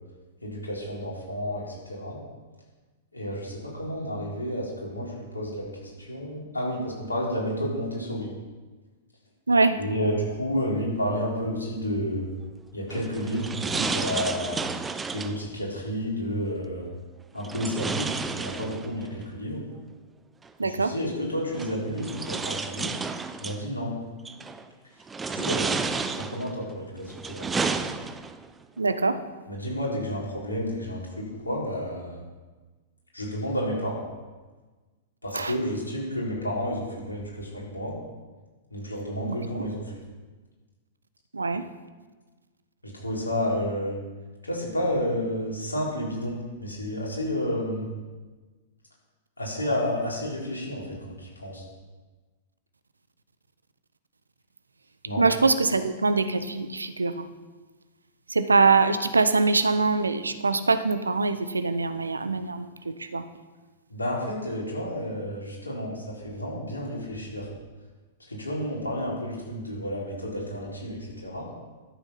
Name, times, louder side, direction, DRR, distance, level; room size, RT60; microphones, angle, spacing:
voice 1, 0.4-2.2 3.1-8.3 9.8-12.3 12.7-14.6 15.1-16.8 17.3-19.6 20.6-22.9 23.4-24.0 25.3-27.9 29.5-32.2 33.1-34.0 35.2-37.9 38.7-40.0 42.8-44.0 44.4-47.9 49.4-51.6 55.0-55.3 63.9-67.5 68.3-71.5, equal, 80° left, -4 dB, 3.9 m, -31 dB
voice 2, 9.5-9.8 20.6-20.9 28.8-29.2 35.3-35.5 39.3-39.6 41.3-41.6 55.2-57.3 58.3-63.2, right 3 dB, 80° right, 11 dB, 0.7 m, -23 dB
sound 1, 12.9-15.4 17.4-19.1 20.4-20.5 21.5-23.6 24.2-24.6 25.1-26.5 27.0-28.5, right 4 dB, 15° right, 0.6 m, -31 dB
12.5 x 7.2 x 5.7 m, 1.3 s
figure-of-eight pair, 100°, 0 cm